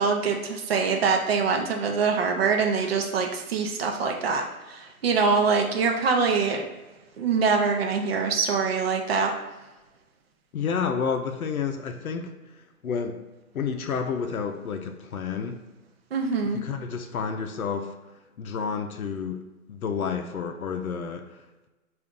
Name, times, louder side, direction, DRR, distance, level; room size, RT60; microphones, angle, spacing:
voice 1, 0.0-6.6 7.2-9.3 16.1-16.6, right 5 dB, 45° right, 2 dB, 0.6 m, -24 dB
voice 2, 10.5-12.3 12.8-13.2 13.5-15.6 16.5-17.9 18.4-19.4 19.7-21.7, left 6 dB, 75° left, 6 dB, 0.6 m, -30 dB
3.7 x 2.5 x 3.6 m, 1.1 s
hypercardioid pair, 145°, 43 cm